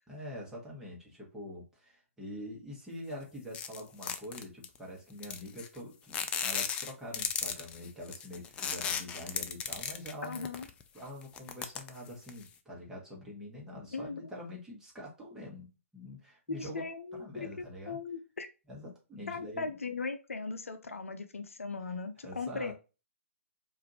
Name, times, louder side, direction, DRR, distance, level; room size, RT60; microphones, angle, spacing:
voice 1, 0.1-10.5 10.9-16.9 17.2-18.0 18.7-19.8 22.2-22.7, left 1 dB, 5° right, -3 dB, 1.3 m, -45 dB
sound 1, 3.5-4.8 5.2-5.8 6.1-10.8 11.2-12.5, left 7 dB, 15° left, 0.3 m, -35 dB
voice 2, 10.2-10.7 13.9-14.3 16.5-18.5 19.3-22.7, left 4 dB, 75° left, 9 dB, 0.6 m, -38 dB
4.9 x 2.6 x 3.0 m, 0.31 s
figure-of-eight pair, 130°, 8 cm